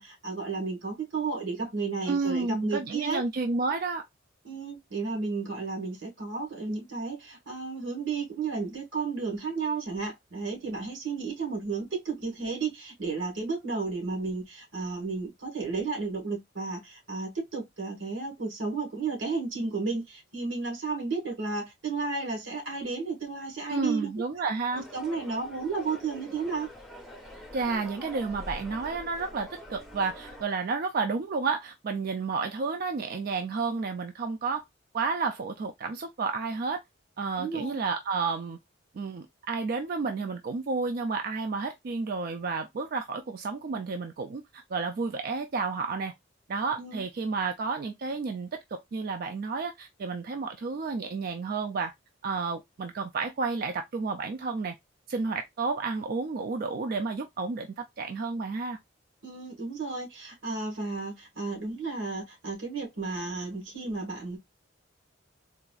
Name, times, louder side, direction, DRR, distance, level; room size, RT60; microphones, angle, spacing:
voice 1, 0.0-3.2 4.4-24.1 24.9-26.7 37.4-37.8 46.7-47.0 59.2-64.4, right 4 dB, 85° right, 1.5 m, -33 dB
voice 2, 2.1-4.0 23.7-24.8 27.5-34.6 34.9-36.8 37.2-38.6 38.9-46.1 46.5-51.9 52.2-54.8 55.1-58.8, right 4 dB, 50° right, 0.4 m, -31 dB
sound 1, 24.7-30.4, equal, ahead, 0.7 m, -45 dB
3.9 x 2.5 x 2.3 m
head